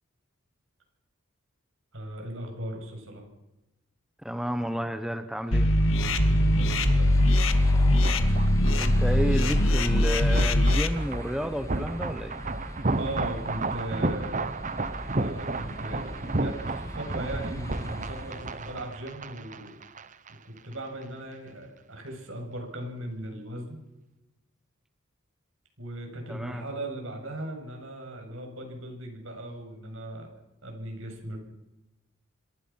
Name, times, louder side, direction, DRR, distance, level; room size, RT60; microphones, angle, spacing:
voice 1, 1.9-3.2 6.1-7.2 12.9-14.5 15.1-19.8 20.3-23.8 25.8-30.3 30.6-31.4, right 1 dB, 65° right, 3 dB, 7.8 m, -38 dB
voice 2, 4.2-5.7 8.8-12.4 26.3-26.7, equal, 5° right, 8 dB, 1.1 m, -31 dB
sound 1, 5.4-18.9, equal, 15° left, 1.9 m, -39 dB
sound 2, 5.5-10.9, left 1 dB, 65° left, 2.2 m, -21 dB
sound 3, 6.5-20.3 20.6-20.7, right 2 dB, 35° right, 1.0 m, -33 dB
27.0 x 22.5 x 5.9 m, 0.96 s
head